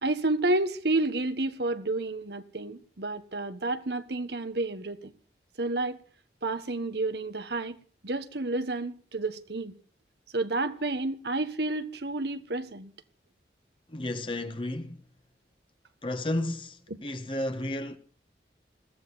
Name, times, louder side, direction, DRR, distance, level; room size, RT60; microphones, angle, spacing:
voice 1, 0.0-5.1 5.6-6.0 6.4-7.8 8.0-9.7 10.3-12.9, right 2 dB, 70° right, 1.4 m, -30 dB
voice 2, 13.9-15.0 16.0-18.0, left 1 dB, 30° left, 1.3 m, -32 dB
21.5 x 15.0 x 4.1 m
head